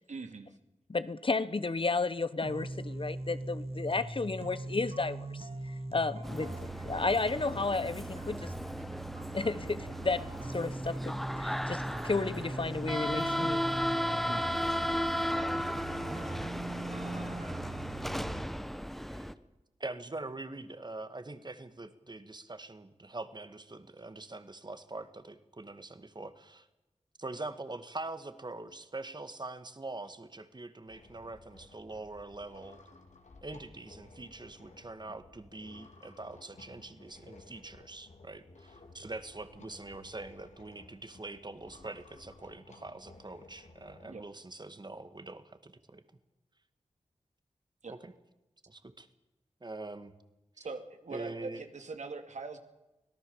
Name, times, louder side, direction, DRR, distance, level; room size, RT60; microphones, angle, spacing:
voice 1, 0.1-0.6 14.2-14.8 44.0-44.2 47.8-47.9 50.6-52.6, right 4 dB, 85° right, 6 dB, 2.5 m, -42 dB
voice 2, 0.9-5.5 5.9-8.5 9.3-13.6, left 3 dB, 45° left, 15 dB, 1.1 m, -33 dB
sound 1, 2.4-18.4, right 2 dB, 55° right, 2.6 m, -41 dB
sound 2, 6.2-19.3, equal, ahead, 1.2 m, -35 dB
voice 3, 19.8-26.7 27.2-32.8 33.4-46.0 47.9-48.1 48.7-49.1 49.6-50.1 51.1-51.6, right 2 dB, 35° right, 11 dB, 2.0 m, -44 dB
sound 3, 30.9-44.1, left 2 dB, 80° left, 3.8 m, -56 dB
25.0 x 18.0 x 7.3 m, 0.99 s
wide cardioid pair, 60°, 12 cm